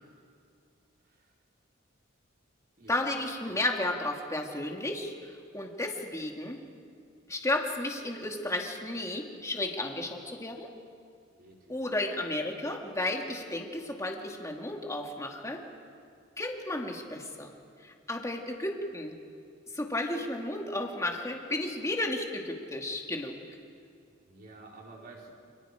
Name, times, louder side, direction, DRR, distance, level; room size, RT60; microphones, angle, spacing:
voice 1, 2.9-6.6 7.3-10.7 11.7-15.6 16.4-17.5 17.8-19.1 19.7-23.4, left 1 dB, 15° left, 1 dB, 2.3 m, -33 dB
voice 2, 11.4-11.8 24.1-25.3, right 3 dB, 50° right, -2 dB, 4.4 m, -51 dB
29.0 x 28.0 x 5.1 m, 2.3 s
head